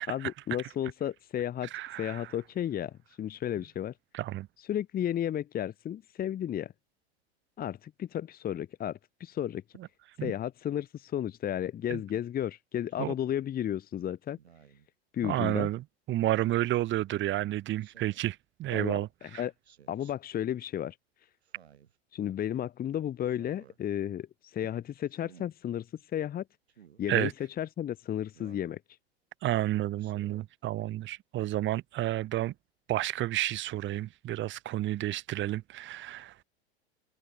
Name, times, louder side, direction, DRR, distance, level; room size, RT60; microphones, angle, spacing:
voice 1, 0.1-1.7 2.0-3.9 4.7-6.7 7.6-9.6 10.2-14.4 15.1-15.7 18.7-19.5 19.9-21.0 22.1-25.9 26.1-26.4 27.0-27.3 27.6-28.8, left 10 dB, 30° left, 1.8 m, -33 dB
voice 2, 1.7-2.3 4.1-4.5 10.2-10.3 11.9-12.0 13.0-13.1 15.2-19.4 27.1-27.3 29.4-32.5 32.9-36.4, right 15 dB, 35° right, 2.5 m, -31 dB
Speech synthesizer, 12.9-13.2 14.4-14.9 16.3-16.6 17.8-18.3 19.6-20.1 21.4-22.0 23.3-23.8 25.1-25.5 26.7-27.0 28.3-28.7 30.0-30.5, right 8 dB, 80° right, 6.7 m, -57 dB
hypercardioid pair, 95°, 32 cm